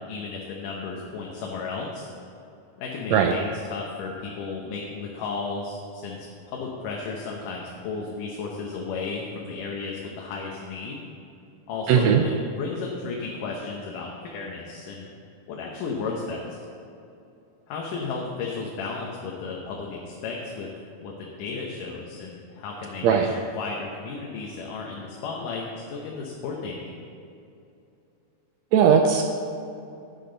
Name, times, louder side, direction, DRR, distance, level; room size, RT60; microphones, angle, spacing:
voice 1, 0.0-2.1 2.8-6.2 6.5-11.0 11.7-15.1 15.5-16.6 17.7-20.7 21.0-26.9, left 4 dB, 85° left, -2 dB, 2.6 m, -34 dB
voice 2, 11.9-12.2 23.0-23.3 28.7-29.5, right 7 dB, 85° right, 4 dB, 1.5 m, -18 dB
10.5 x 10.0 x 3.9 m, 2.7 s
omnidirectional pair, 3.7 m